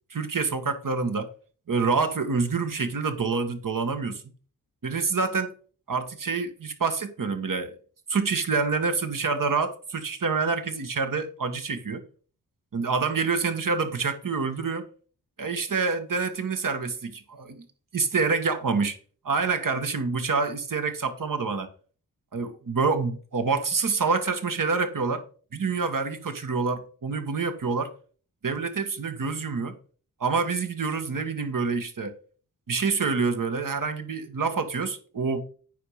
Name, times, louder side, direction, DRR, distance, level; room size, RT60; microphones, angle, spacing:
voice 1, 0.1-1.3 1.7-4.2 4.8-5.5 5.9-7.7 8.1-12.0 12.7-14.8 15.4-17.6 17.9-19.0 19.2-21.7 22.3-25.2 25.5-27.9 28.4-29.7 30.2-32.1 32.7-35.5, right 4 dB, 55° right, 1.7 m, -27 dB
9.2 x 5.1 x 5.8 m
cardioid pair, 50°, 39 cm